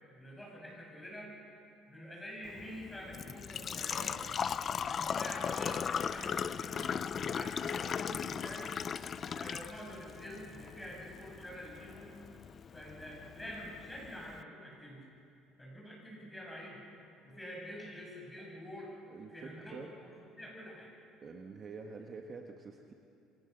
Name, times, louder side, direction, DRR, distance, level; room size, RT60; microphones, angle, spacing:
voice 1, 0.2-1.4 1.9-4.2 4.8-6.9 7.2-8.7 9.1-12.1 12.7-15.0 15.6-16.8 17.2-18.9 19.3-19.7 20.0-20.9, equal, 5° left, -3 dB, 7.2 m, -47 dB
Engine / Trickle dribble / Fill (with liquid), 2.4-14.4, left 7 dB, 30° left, 0.5 m, -38 dB
voice 2, 19.1-19.9 21.2-22.9, right 4 dB, 30° right, 2 dB, 1.5 m, -47 dB
28.0 x 24.0 x 6.8 m, 2.7 s
cardioid pair, 145°, 0 cm